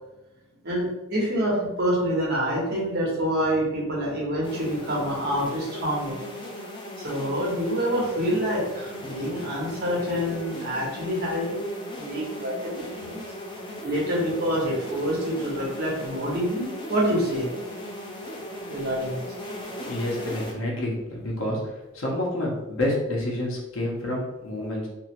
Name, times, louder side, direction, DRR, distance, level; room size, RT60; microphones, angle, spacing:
voice 1, 0.6-6.2 7.0-11.6 12.0-13.2 13.8-17.5 18.7-19.2, equal, 50° right, -4 dB, 1.1 m, -27 dB
sound 1, 4.4-20.5, left 1 dB, 20° left, 0.5 m, -37 dB
voice 2, 19.9-21.6 21.9-24.9, left 1 dB, 65° left, -2 dB, 0.9 m, -28 dB
3.0 x 2.6 x 3.0 m, 0.99 s
head